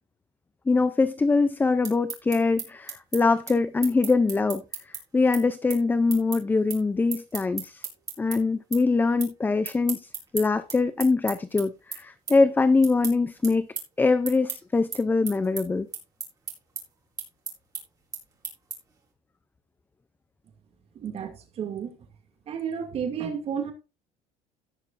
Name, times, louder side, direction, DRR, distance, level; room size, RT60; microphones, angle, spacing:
voice 1, 0.7-4.6 5.1-7.9 8.2-13.7 14.0-15.9, left 3 dB, 10° left, 0.5 m, -23 dB
sound 1, 1.6-8.4 8.7-9.3 9.6-19.0, right 5 dB, 25° right, 4.2 m, -36 dB
voice 2, 21.0-21.9 22.5-23.7, right 7 dB, 40° right, 2.4 m, -32 dB
17.5 x 6.7 x 2.6 m
cardioid pair, 140°, 15 cm